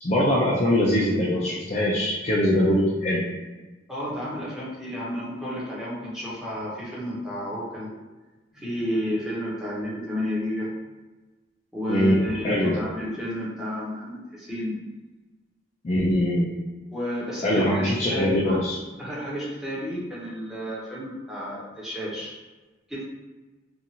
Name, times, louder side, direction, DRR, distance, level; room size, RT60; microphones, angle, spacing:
voice 1, 0.0-3.2 11.9-12.2 12.4-12.8 15.8-16.5 17.4-18.8, left 1 dB, 35° left, -4 dB, 0.4 m, -22 dB
voice 2, 3.9-7.9 8.5-10.7 11.7-14.8 16.9-18.6 19.0-22.3 22.9-23.0, equal, ahead, -9 dB, 0.8 m, -31 dB
2.7 x 2.4 x 2.8 m, 1.2 s
head